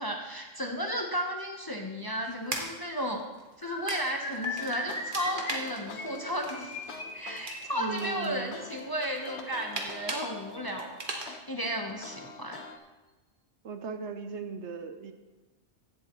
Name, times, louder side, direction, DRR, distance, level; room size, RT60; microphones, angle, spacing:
voice 1, 0.0-3.2 3.6-11.0 11.3-12.6, equal, 20° left, 2 dB, 0.8 m, -34 dB
sound 1, 2.2-11.3, right 2 dB, 40° right, 1.3 m, -41 dB
sound 2, 3.6-10.8 11.6-11.8 12.1-12.3 12.6-12.8, left 2 dB, 35° left, 1.9 m, -41 dB
sound 3, 4.6-8.9 9.3-10.9 11.3-12.8, left 4 dB, 55° left, 1.1 m, -46 dB
voice 2, 7.7-8.6 13.6-15.1, right 5 dB, 65° right, 7 dB, 0.9 m, -37 dB
15.5 x 7.6 x 3.0 m, 1.2 s
omnidirectional pair, 1.4 m